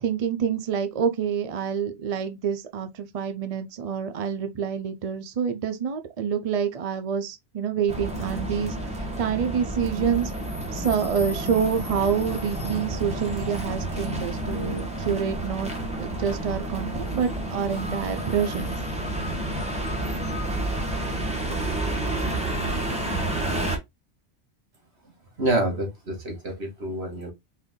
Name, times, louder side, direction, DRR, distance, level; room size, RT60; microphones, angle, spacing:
voice 1, 0.0-8.8 9.2-10.3 10.7-15.7 16.0-18.8, right 7 dB, 45° right, 0.5 m, -27 dB
sound 1, 7.9-23.8, right 1 dB, 5° right, 0.9 m, -30 dB
voice 2, 25.4-27.3, right 1 dB, 70° right, 2.0 m, -27 dB
4.4 x 2.6 x 3.7 m
omnidirectional pair, 1.1 m